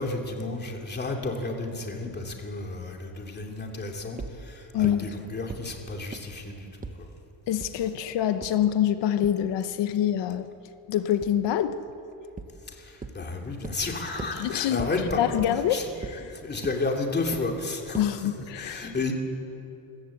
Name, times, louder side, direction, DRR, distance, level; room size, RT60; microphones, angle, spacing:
voice 1, 0.0-6.7 7.0-7.1 12.7-15.4 15.7-15.9 16.3-18.1 18.6-19.1, left 3 dB, 25° left, 2 dB, 2.6 m, -32 dB
sound 1, 4.2-4.3 4.8-4.9 5.5-5.6 6.1-6.2 6.8-6.9 7.6-7.7 8.4-8.5 9.2-9.3 11.2-11.3 12.4-12.5 13.0-13.1 13.6-13.7 14.2-14.3 14.8-14.9 15.4-15.5 16.0-16.1 16.6-16.7 17.3-17.4 17.9-18.0, right 4 dB, 20° right, 1.1 m, -36 dB
voice 2, 4.7-5.5 7.5-10.5 10.9-11.8 14.3-14.9 15.2-16.3 17.9-18.9, left 10 dB, 90° left, 10 dB, 1.0 m, -26 dB
25.0 x 15.5 x 8.4 m, 2.9 s
cardioid pair, 150°, 41 cm